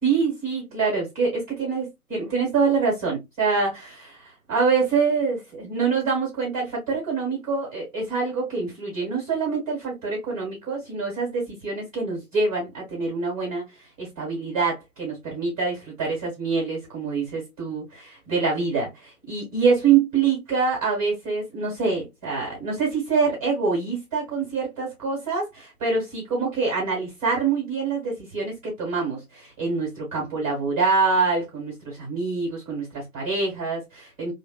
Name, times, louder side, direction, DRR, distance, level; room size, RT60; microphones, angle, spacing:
voice 1, 0.0-13.6 14.0-34.3, right 4 dB, 25° right, 1.8 m, -25 dB
3.2 x 2.1 x 2.2 m
figure-of-eight pair, 145°, 46 cm